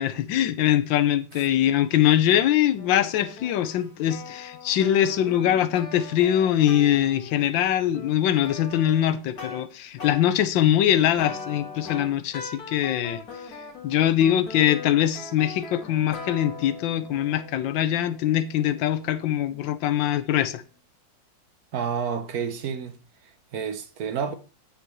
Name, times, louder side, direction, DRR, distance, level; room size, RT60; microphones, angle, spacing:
voice 1, 0.0-13.2 13.8-20.6, left 11 dB, 85° left, 1.4 m, -22 dB
sound 1, 2.8-9.6 10.0-10.2 10.9-19.9, left 4 dB, 55° left, 2.2 m, -41 dB
voice 2, 21.7-23.0 23.2-24.3, right 7 dB, 60° right, 1.1 m, -30 dB
9.0 x 6.9 x 3.1 m
omnidirectional pair, 2.0 m